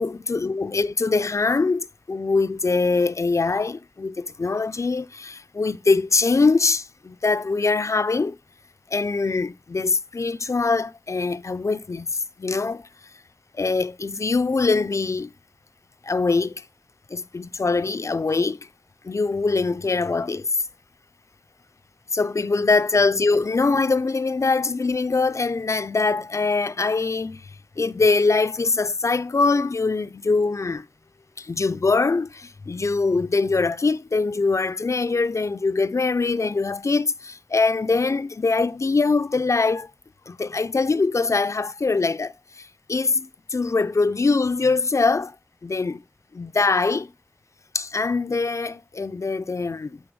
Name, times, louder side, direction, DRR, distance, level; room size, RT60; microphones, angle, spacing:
voice 1, 0.0-8.4 8.9-12.9 13.5-15.3 16.0-16.6 17.1-18.6 19.0-20.6 22.1-30.9 31.4-39.9 40.3-45.3 45.6-46.0 46.3-47.1 47.7-50.0, left 3 dB, 70° left, 0.4 m, -23 dB
8.0 x 3.4 x 4.7 m
wide cardioid pair, 40°, 5 cm